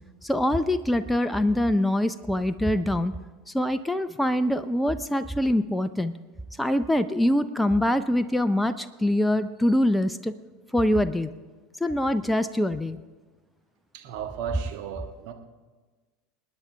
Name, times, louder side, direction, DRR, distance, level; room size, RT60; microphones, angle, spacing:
voice 1, 0.2-3.1 3.5-6.1 6.6-10.3 10.7-11.3 11.8-13.0, left 1 dB, 5° left, 12 dB, 0.5 m, -24 dB
voice 2, 13.9-15.3, right 8 dB, 50° right, 5 dB, 1.4 m, -35 dB
27.5 x 9.5 x 3.3 m, 1.3 s
figure-of-eight pair, 75°, 0 cm